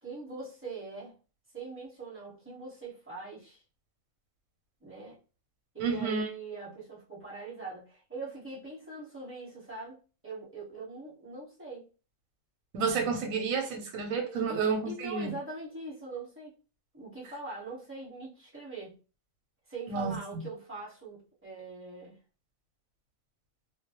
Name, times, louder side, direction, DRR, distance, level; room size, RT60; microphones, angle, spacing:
voice 1, 0.0-1.1 1.5-3.6 4.8-5.2 5.7-11.9 14.5-16.5 16.9-18.9 19.7-22.2, right 3 dB, 10° right, 0.9 m, -42 dB
voice 2, 5.8-6.3 12.7-15.3 19.9-20.2, right 5 dB, 90° right, 1.0 m, -30 dB
2.3 x 2.0 x 2.8 m
omnidirectional pair, 1.4 m